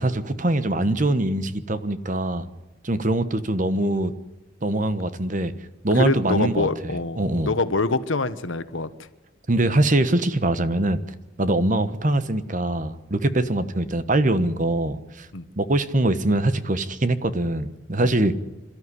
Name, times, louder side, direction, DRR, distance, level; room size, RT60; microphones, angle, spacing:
voice 1, 0.0-2.4 2.8-4.1 4.6-5.5 5.8-7.5 9.5-11.0 11.4-15.3 15.6-18.3, right 1 dB, 40° right, 12 dB, 1.2 m, -23 dB
voice 2, 5.9-7.2 7.4-8.9 15.3-15.4 18.0-18.1, left 3 dB, 75° left, 12 dB, 1.2 m, -25 dB
27.5 x 13.0 x 9.8 m, 1.1 s
head